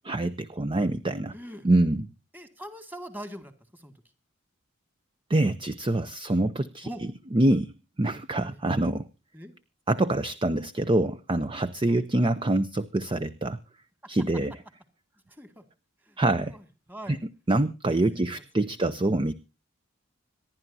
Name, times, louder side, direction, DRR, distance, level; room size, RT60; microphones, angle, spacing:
voice 1, 0.0-1.3 1.6-2.0 5.3-6.9 7.3-7.7 8.0-9.1 9.9-13.6 14.1-14.5 16.2-16.5 17.1-17.2 17.5-19.3, right 2 dB, 25° right, 13 dB, 0.6 m, -25 dB
voice 2, 1.3-1.7 2.3-3.9 6.8-7.0 8.0-8.2 8.5-8.6 9.3-9.5 11.9-12.0 14.0-14.1 15.3-15.6 16.0-17.2 18.1-18.8, equal, 10° right, 9 dB, 2.1 m, -43 dB
26.0 x 11.0 x 2.7 m, 0.31 s
head